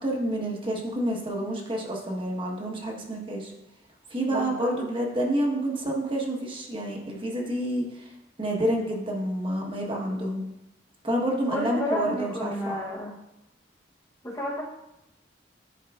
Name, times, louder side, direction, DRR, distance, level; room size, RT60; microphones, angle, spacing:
voice 1, 0.0-3.5 4.1-8.1 8.4-10.5 11.0-12.8, right 1 dB, 30° right, -1 dB, 1.0 m, -29 dB
voice 2, 4.3-4.8 11.5-13.2 14.2-14.6, equal, 20° left, -2 dB, 0.8 m, -31 dB
11.0 x 4.7 x 2.3 m, 0.90 s
head